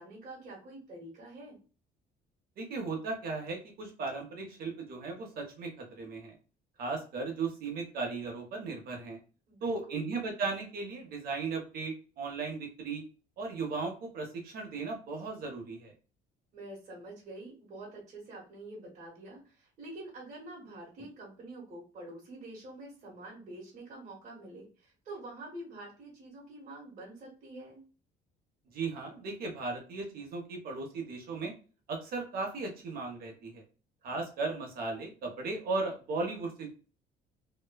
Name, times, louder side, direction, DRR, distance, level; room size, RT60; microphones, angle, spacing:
voice 1, 0.0-1.6 9.5-10.1 16.5-27.8, right 2 dB, 45° right, -5 dB, 1.4 m, -46 dB
voice 2, 2.6-6.3 6.8-9.2 9.6-13.0 13.4-15.9 28.7-31.5 31.9-33.6 34.0-36.7, right 3 dB, 60° right, 1 dB, 1.0 m, -36 dB
3.0 x 2.2 x 2.2 m, 0.36 s
cardioid pair, 110°, 17 cm